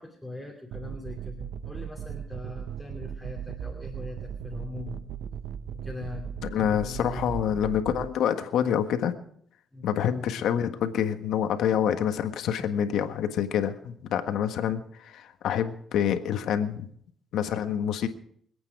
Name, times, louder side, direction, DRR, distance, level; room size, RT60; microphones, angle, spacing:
voice 1, 0.0-5.0 5.8-7.5 9.7-9.9, left 2 dB, 5° left, 0 dB, 2.8 m, -41 dB
sound 1, 0.7-8.1, right 8 dB, 80° right, 0.6 m, -37 dB
voice 2, 6.4-9.1 9.8-16.9 17.3-18.1, left 9 dB, 80° left, 7 dB, 1.5 m, -27 dB
25.5 x 8.8 x 4.8 m, 0.64 s
cardioid pair, 90°, 0 cm